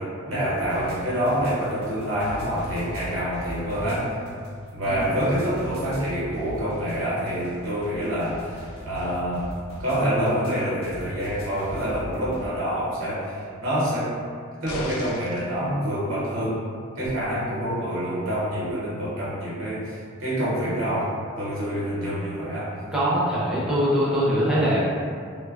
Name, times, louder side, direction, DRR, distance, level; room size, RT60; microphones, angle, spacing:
voice 1, 0.0-4.1 4.7-9.5 9.8-14.1 14.6-16.6 16.9-22.7, equal, 70° right, -9 dB, 0.8 m, -27 dB
sound 1, 0.5-12.5, equal, 30° left, 0.8 m, -40 dB
sound 2, 14.7-15.5 17.0-17.1, left 2 dB, 90° left, 0.4 m, -37 dB
voice 2, 22.9-24.8, equal, 5° right, -9 dB, 0.5 m, -22 dB
3.1 x 2.1 x 2.3 m, 2.2 s
head